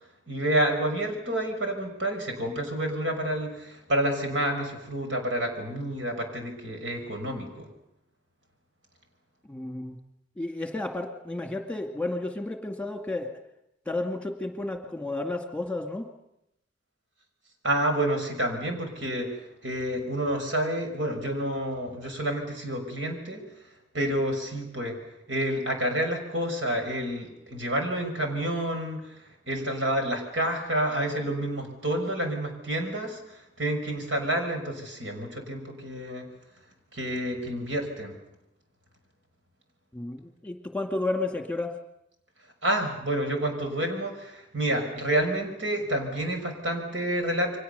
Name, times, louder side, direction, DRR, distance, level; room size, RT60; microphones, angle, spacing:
voice 1, 0.3-7.7 17.6-19.3 19.6-23.4 23.9-24.9 25.3-29.0 29.5-36.3 36.9-38.1 42.6-47.6, right 1 dB, 75° right, 4 dB, 5.8 m, -29 dB
voice 2, 9.5-10.0 10.4-13.4 13.9-16.1 39.9-41.8, left 2 dB, 5° left, 4 dB, 2.1 m, -32 dB
29.5 x 23.5 x 6.8 m, 0.85 s
head